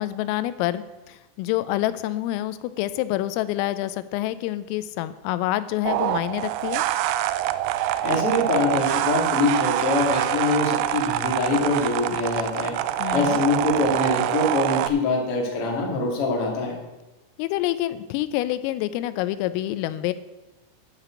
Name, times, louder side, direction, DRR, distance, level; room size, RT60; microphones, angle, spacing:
voice 1, 0.0-6.8 13.0-13.4 17.4-20.1, left 14 dB, 85° left, 14 dB, 3.3 m, -27 dB
sound 1, 5.9-14.9, right 13 dB, 85° right, 2.7 m, -25 dB
voice 2, 8.0-12.7 13.1-16.7, left 3 dB, 45° left, 0 dB, 1.9 m, -24 dB
12.0 x 5.9 x 8.3 m, 1.1 s
omnidirectional pair, 5.8 m